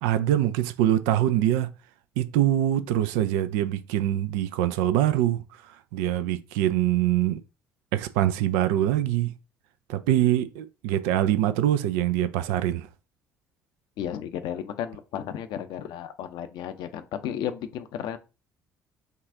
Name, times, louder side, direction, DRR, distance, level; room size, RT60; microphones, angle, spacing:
voice 1, 0.0-1.7 2.2-5.4 5.9-7.4 7.9-9.3 9.9-12.9, right 12 dB, 65° right, 0.4 m, -24 dB
voice 2, 14.0-18.2, left 10 dB, 60° left, 0.6 m, -33 dB
5.5 x 2.4 x 3.6 m
figure-of-eight pair, 50°, 9 cm